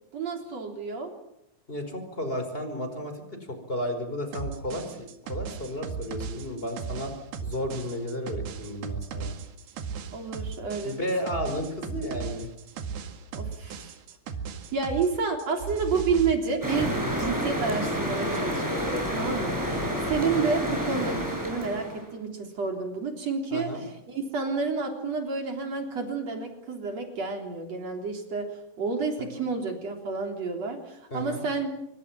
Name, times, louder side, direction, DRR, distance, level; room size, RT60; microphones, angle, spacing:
voice 1, 0.1-1.1 10.1-11.0 13.4-13.9 14.7-28.5 28.8-31.7, right 4 dB, 45° right, 4 dB, 4.5 m, -30 dB
voice 2, 1.7-3.2 3.7-7.1 7.4-9.4 10.8-12.5 19.2-20.0 23.5-23.8 31.1-31.4, equal, 15° left, 7 dB, 5.1 m, -33 dB
sound 1, 4.3-15.1 15.4-16.3, right 6 dB, 90° right, 3.9 m, -36 dB
sound 2, 16.6-22.1, equal, 5° right, 6.4 m, -29 dB
27.0 x 24.0 x 7.5 m, 0.80 s
omnidirectional pair, 4.4 m